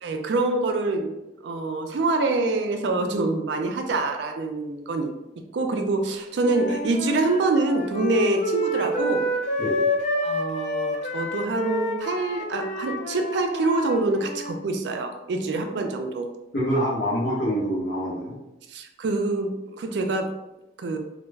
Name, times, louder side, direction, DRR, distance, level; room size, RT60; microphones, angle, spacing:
voice 1, 0.0-1.1 1.4-5.1 5.5-9.2 10.2-16.3 18.7-20.3 20.8-21.0, right 3 dB, 65° right, 5 dB, 0.3 m, -25 dB
Wind instrument woodwind instrument, 6.4-14.5, left 1 dB, 40° left, 0.3 m, -28 dB
voice 2, 16.5-18.3, equal, 60° left, -8 dB, 0.7 m, -25 dB
2.2 x 2.0 x 3.2 m, 0.92 s
head